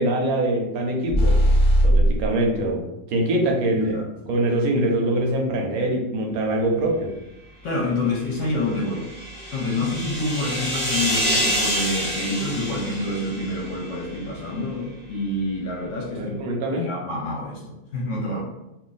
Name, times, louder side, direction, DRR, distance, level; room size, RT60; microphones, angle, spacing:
voice 1, 0.0-1.4 1.8-4.0 4.3-7.1 16.1-16.9, right 1 dB, 70° right, 1 dB, 1.0 m, -23 dB
sound 1, 1.1-2.3, right 1 dB, 30° left, 0.7 m, -17 dB
voice 2, 3.9-4.3 7.6-9.1 9.5-16.3 16.7-18.4, left 2 dB, 60° left, -2 dB, 0.9 m, -27 dB
sound 2, 8.5-14.1, equal, 10° right, 0.7 m, -27 dB
2.5 x 2.5 x 3.8 m, 0.95 s
omnidirectional pair, 1.6 m